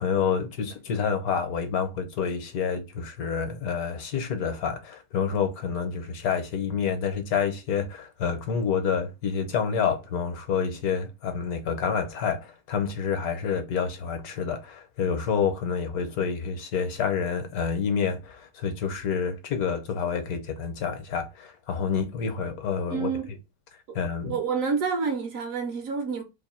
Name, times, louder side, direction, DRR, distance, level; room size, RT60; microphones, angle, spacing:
voice 1, 0.0-23.1 23.9-24.4, left 6 dB, 70° left, 1.1 m, -28 dB
voice 2, 22.9-23.3 23.9-24.0 24.2-26.2, right 5 dB, 65° right, 0.9 m, -28 dB
2.9 x 2.6 x 4.0 m
omnidirectional pair, 1.7 m